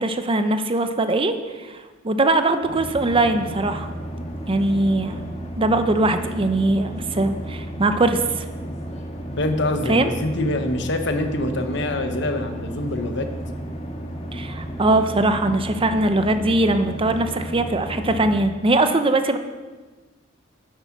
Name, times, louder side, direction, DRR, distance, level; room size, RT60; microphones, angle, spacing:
voice 1, 0.0-3.9 4.5-5.2 5.6-8.5 9.9-10.1 14.3-19.4, right 2 dB, 30° right, 8 dB, 0.7 m, -21 dB
sound 1, 2.6-18.4, right 1 dB, 35° left, 1.7 m, -33 dB
voice 2, 9.4-13.3, left 1 dB, 70° left, 6 dB, 1.2 m, -25 dB
10.0 x 8.4 x 6.0 m, 1.3 s
head